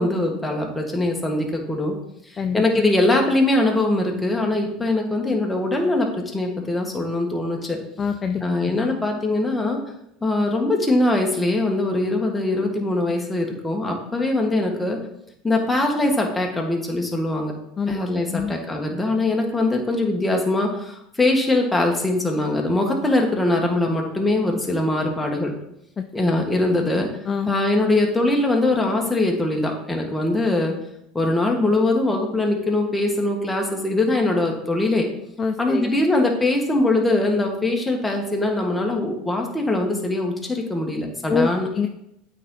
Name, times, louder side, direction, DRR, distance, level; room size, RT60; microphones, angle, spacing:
voice 1, 0.0-1.9 2.5-7.8 8.4-9.8 10.2-15.0 15.4-17.5 17.9-25.5 26.1-27.1 27.5-30.7 31.1-35.1 35.6-41.7, left 2 dB, 10° left, 1 dB, 1.6 m, -22 dB
voice 2, 8.0-8.4 8.7-8.8 17.8-18.0 18.3-18.6 26.0-26.1 27.3-27.5 35.4-35.9 41.3-41.5 41.7-41.9, left 5 dB, 30° left, 7 dB, 0.4 m, -24 dB
8.3 x 4.2 x 3.8 m, 0.80 s
supercardioid pair, 95°, 0 cm